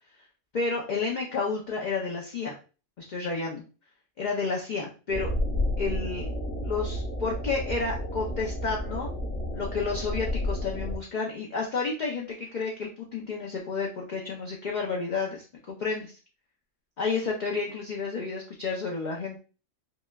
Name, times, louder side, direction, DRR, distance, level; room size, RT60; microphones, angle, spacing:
voice 1, 0.5-2.6 3.0-3.6 4.2-5.3 5.8-6.3 6.6-9.1 9.5-16.1 17.0-19.4, left 4 dB, 60° left, -1 dB, 0.4 m, -31 dB
sound 1, 5.1-11.0, left 1 dB, 35° left, 1.1 m, -31 dB
5.1 x 2.1 x 2.3 m, 0.36 s
omnidirectional pair, 1.5 m